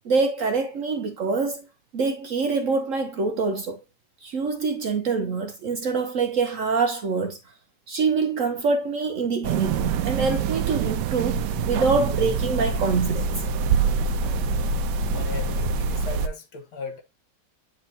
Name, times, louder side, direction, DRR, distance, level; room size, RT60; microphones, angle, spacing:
voice 1, 0.0-1.6 1.9-3.8 4.2-7.4 7.9-13.3, right 4 dB, 60° right, 0.9 m, -25 dB
sound 1, 9.4-16.3, right 5 dB, 75° right, 1.2 m, -25 dB
voice 2, 15.1-17.0, left 3 dB, 65° left, 1.6 m, -37 dB
8.6 x 4.4 x 2.7 m
omnidirectional pair, 1.9 m